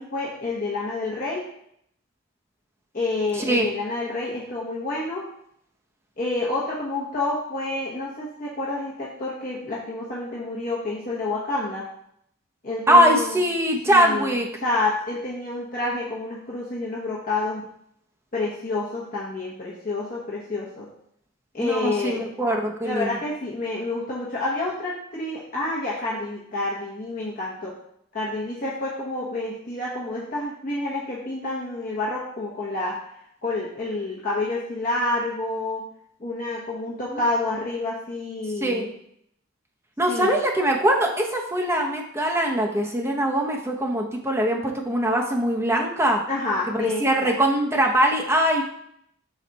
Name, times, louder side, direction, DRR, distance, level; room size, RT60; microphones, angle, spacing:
voice 1, 0.0-1.5 2.9-5.2 6.2-11.9 12.6-13.4 13.9-17.6 18.3-20.9 21.5-22.2 22.8-27.8 28.1-33.1 33.4-35.8 36.2-38.9 40.1-40.4 46.3-47.3, left 2 dB, 40° left, -6 dB, 1.0 m, -29 dB
voice 2, 12.9-14.5 21.6-23.2 37.1-37.2 38.6-38.9 40.0-46.2 46.7-48.6, right 1 dB, 10° right, 0 dB, 0.7 m, -22 dB
6.1 x 4.0 x 4.0 m, 0.71 s
head